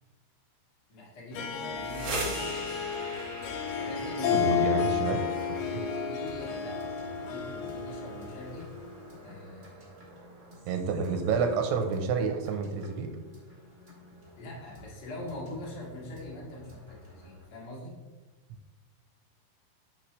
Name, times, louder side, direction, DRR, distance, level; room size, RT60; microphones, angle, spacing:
voice 1, 0.9-2.4 3.7-8.7 9.2-10.1 14.4-18.0, left 1 dB, 60° left, -4 dB, 1.0 m, -43 dB
Harp, 1.3-9.0, left 7 dB, 75° left, 2.5 m, -32 dB
sound 1, 1.6-11.4, right 4 dB, 70° right, 1.4 m, -43 dB
sound 2, 2.1-17.5, left 1 dB, 30° right, 1.1 m, -53 dB
voice 2, 4.3-5.2 5.5-5.6 10.7-13.1, right 5 dB, 90° right, 5 dB, 2.7 m, -29 dB
9.0 x 5.8 x 3.2 m, 1.3 s
omnidirectional pair, 4.8 m